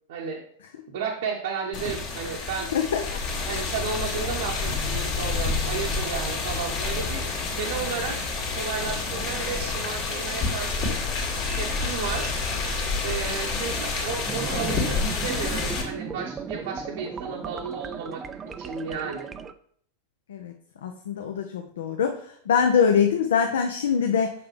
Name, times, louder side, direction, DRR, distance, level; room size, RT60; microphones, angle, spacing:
voice 1, 0.1-0.5 0.9-2.7 3.5-8.2 8.6-11.0 11.6-12.3 13.0-18.2 18.6-19.3, right 6 dB, 55° right, 0 dB, 0.8 m, -33 dB
sound 1, 1.7-15.8, left 4 dB, 40° left, 1.9 m, -28 dB
voice 2, 2.7-3.2 13.6-13.7 20.3-20.5 20.8-24.3, left 7 dB, 65° left, 5 dB, 0.6 m, -24 dB
sound 2, 14.3-19.5, right 6 dB, 20° right, 0.4 m, -36 dB
6.8 x 5.7 x 3.2 m, 0.62 s
figure-of-eight pair, 90°, 0 cm